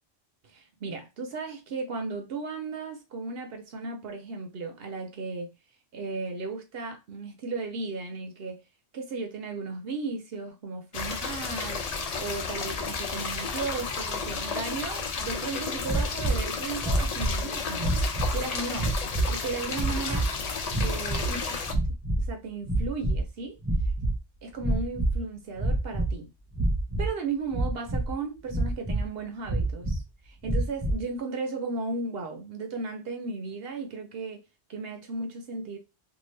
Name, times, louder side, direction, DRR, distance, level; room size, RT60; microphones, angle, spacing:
voice 1, 0.4-5.5 5.9-8.6 8.9-17.9 18.3-19.0 19.3-20.3 20.8-21.6 22.2-23.5 24.4-26.3 27.0-34.4 34.7-35.8, right 3 dB, 70° right, 0.8 m, -35 dB
sound 1, 10.9-21.7, left 5 dB, 55° left, 0.4 m, -32 dB
sound 2, 15.8-16.4 16.8-17.4 17.8-18.4 18.7-19.3 19.7-20.3 20.7-21.4 21.6-22.3 22.6-23.3 23.6-24.2 24.6-25.2 25.5-26.1 26.5-27.1 27.5-28.1 28.5-29.1 29.5-30.0 30.4-31.0, right 2 dB, 20° right, 0.5 m, -27 dB
2.6 x 2.5 x 3.1 m
omnidirectional pair, 1.1 m